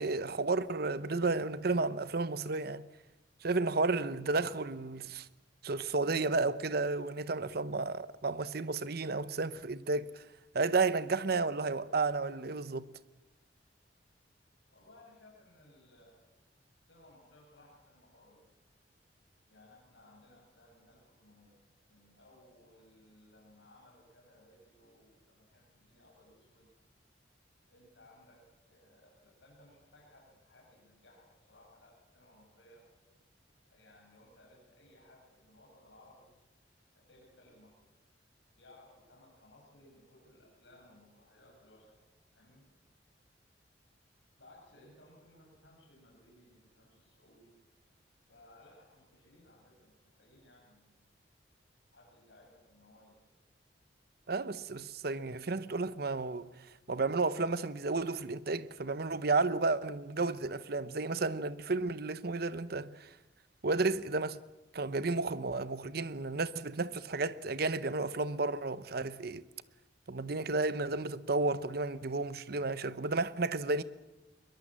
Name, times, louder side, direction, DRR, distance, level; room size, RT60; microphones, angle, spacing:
voice 1, 0.0-2.9 3.4-5.3 5.6-10.2 10.5-12.9 54.3-56.5 56.9-63.1 63.6-64.4 64.7-69.4 70.1-73.8, right 3 dB, 60° right, 0.8 m, -32 dB
voice 2, 14.7-16.2 16.9-18.4 19.5-21.6 21.9-26.7 27.7-32.9 33.7-36.3 36.9-37.8 38.6-42.0 42.3-42.7 44.4-47.6 48.3-51.0 51.9-53.4, left 1 dB, 85° left, 7.2 m, -61 dB
22.5 x 22.0 x 7.5 m
head